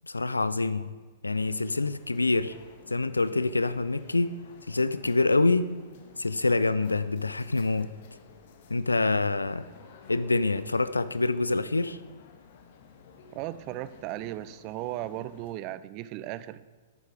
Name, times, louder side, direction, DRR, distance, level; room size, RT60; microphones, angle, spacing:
voice 1, 0.0-0.9 1.2-2.5 2.9-4.3 4.7-5.7 6.2-7.9 8.7-9.7 10.1-12.0, left 3 dB, 80° left, 15 dB, 0.4 m, -26 dB
sound 1, 1.3-15.5, left 6 dB, 50° left, 1.3 m, -53 dB
voice 2, 13.3-16.6, right 14 dB, 35° right, 16 dB, 0.4 m, -36 dB
11.0 x 9.1 x 5.0 m, 1.4 s
figure-of-eight pair, 105°, 0 cm